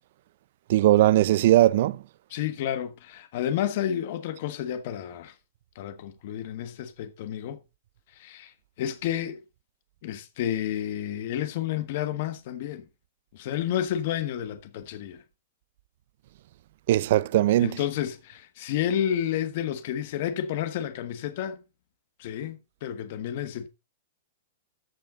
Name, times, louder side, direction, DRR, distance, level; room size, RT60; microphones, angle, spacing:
voice 1, 0.7-2.0 16.9-17.7, right 14 dB, 50° right, 0.5 m, -19 dB
voice 2, 2.3-5.3 5.7-7.6 8.2-8.5 8.8-9.4 10.0-12.8 13.3-15.2 17.6-21.6 22.2-23.7, left 10 dB, 45° left, 1.4 m, -30 dB
14.5 x 5.7 x 3.9 m
supercardioid pair, 170°, 0 cm